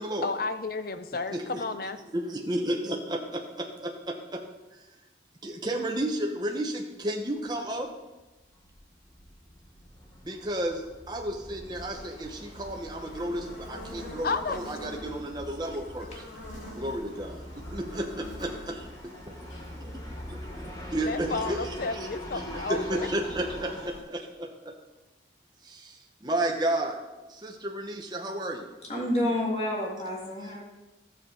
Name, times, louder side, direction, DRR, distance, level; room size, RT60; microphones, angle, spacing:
voice 1, 0.2-2.0 14.2-14.6 21.0-23.1, left 3 dB, 50° left, 10 dB, 0.6 m, -32 dB
voice 2, 2.1-4.4 5.4-7.9 10.2-10.8 11.1-16.2 16.7-20.4 20.9-21.6 22.5-24.7 25.6-27.0 27.3-28.7, right 1 dB, 20° right, 1 dB, 1.0 m, -32 dB
sound 1, 7.4-7.5 7.8-7.9 8.2-23.9, equal, 20° left, 1.2 m, -43 dB
Buzz, 11.7-24.0, left 1 dB, 70° left, 4.0 m, -47 dB
voice 3, 28.9-30.6, left 1 dB, 35° left, -2 dB, 2.0 m, -29 dB
13.0 x 7.6 x 3.9 m, 1.1 s
head